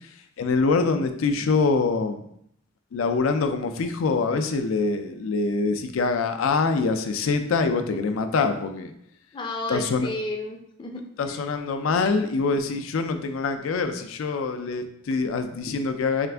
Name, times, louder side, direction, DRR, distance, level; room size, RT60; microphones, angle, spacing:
voice 1, 0.4-2.2 2.9-8.9 9.7-10.1 11.2-16.3, left 4 dB, 90° left, 7 dB, 0.4 m, -24 dB
voice 2, 9.3-11.4, left 2 dB, 25° left, 3 dB, 0.4 m, -33 dB
4.4 x 2.4 x 3.3 m, 0.71 s
head